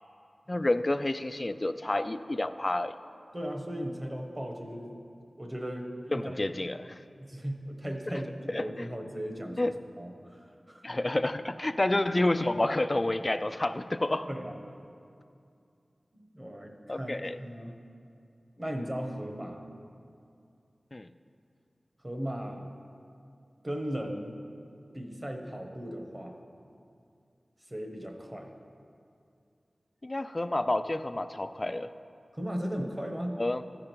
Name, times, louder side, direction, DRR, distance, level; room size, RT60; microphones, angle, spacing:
voice 1, 0.5-2.9 6.1-7.0 8.1-8.2 8.5-8.9 9.6-9.7 10.8-14.3 16.9-17.4 20.9-21.1 30.0-31.9 33.4-33.6, left 1 dB, 35° left, 12 dB, 0.3 m, -29 dB
voice 2, 3.3-5.0 5.4-6.3 7.2-10.4 10.7-10.8 14.3-14.6 16.1-17.8 18.6-19.7 22.0-22.7 23.6-24.4 24.9-26.4 27.7-28.5 32.3-33.4, equal, 25° right, 3 dB, 1.1 m, -37 dB
13.0 x 5.0 x 4.5 m, 2.5 s
wide cardioid pair, 45°, 0 cm